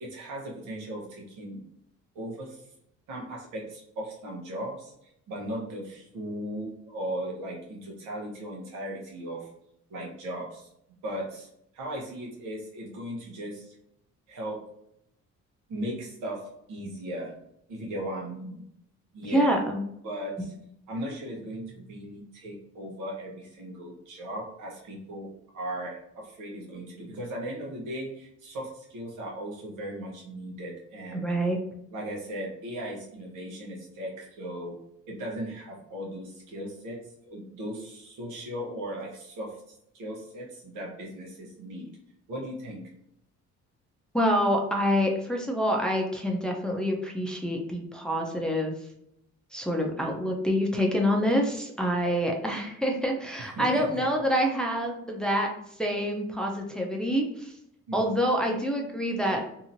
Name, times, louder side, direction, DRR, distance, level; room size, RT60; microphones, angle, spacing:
voice 1, 0.0-1.6 2.1-2.6 3.1-4.9 5.3-9.5 9.9-10.7 11.0-11.5 11.7-13.8 14.3-14.6 15.7-17.3 17.7-18.7 19.1-19.6 20.0-20.5 20.9-31.3 31.9-34.8 35.1-41.9 42.3-42.8 53.6-54.1 57.9-58.2, right 1 dB, 85° right, -2 dB, 1.0 m, -37 dB
voice 2, 19.2-19.8 31.1-31.6 44.1-48.7 49.5-55.5 55.8-57.5 57.9-59.4, equal, 5° left, 0 dB, 0.5 m, -26 dB
2.9 x 2.7 x 2.6 m, 0.76 s
cardioid pair, 90°, 30 cm